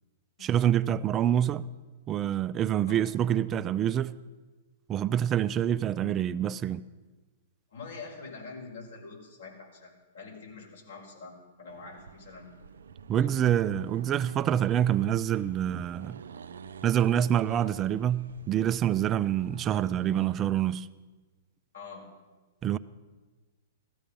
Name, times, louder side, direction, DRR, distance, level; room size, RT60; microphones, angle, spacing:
voice 1, 0.4-1.6 2.1-4.1 4.9-6.8 13.1-16.2 16.8-20.9 22.6-22.8, right 10 dB, 25° right, 0.4 m, -26 dB
voice 2, 7.7-12.5 13.1-13.5 18.2-18.4 21.7-22.1, left 4 dB, 80° left, 5.3 m, -45 dB
Accelerating revving vroom, 11.7-20.4, right 6 dB, 85° right, 0.5 m, -47 dB
16.0 x 14.0 x 5.4 m
hypercardioid pair, 130°, 0 cm